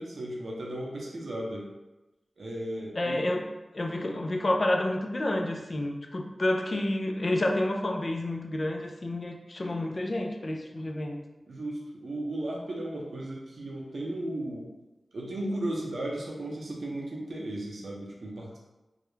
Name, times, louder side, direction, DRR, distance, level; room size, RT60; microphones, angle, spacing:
voice 1, 0.0-1.7 2.4-3.2 3.9-4.2 11.5-14.7 15.1-18.6, right 1 dB, 70° right, -2 dB, 0.6 m, -35 dB
voice 2, 3.0-3.5 3.7-11.2, left 1 dB, 50° left, 3 dB, 0.3 m, -29 dB
2.3 x 2.0 x 3.0 m, 1.0 s
cardioid pair, 50°, 0 cm